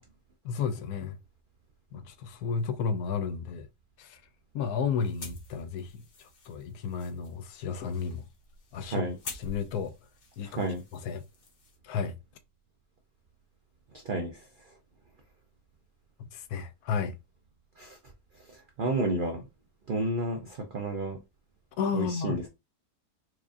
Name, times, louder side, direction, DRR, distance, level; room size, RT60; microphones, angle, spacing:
voice 1, 0.4-1.2 1.9-3.7 4.0-4.2 4.5-6.0 6.5-8.2 8.7-9.9 10.4-10.6 10.9-11.2 11.8-12.2 16.3-17.1 21.8-22.4, left 6 dB, 75° left, 1.0 m, -32 dB
sound 1, 5.0-11.8, left 3 dB, 50° left, 1.4 m, -48 dB
voice 2, 8.8-9.1 10.4-10.8 14.0-14.5 17.8-18.0 18.5-19.5 19.9-21.2 21.9-22.5, right 2 dB, 70° right, 0.5 m, -31 dB
4.7 x 2.4 x 2.5 m
omnidirectional pair, 1.7 m